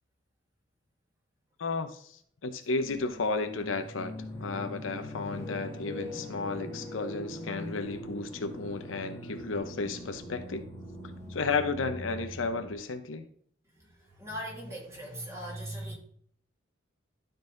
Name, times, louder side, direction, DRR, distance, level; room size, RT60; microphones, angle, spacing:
voice 1, 1.6-2.1 2.4-10.7 11.3-13.3, left 3 dB, 90° left, 0.8 m, -33 dB
sound 1, 2.8-12.7, left 1 dB, 15° left, 1.5 m, -42 dB
voice 2, 13.6-16.0, equal, 15° right, 2.5 m, -40 dB
12.0 x 4.1 x 3.9 m
head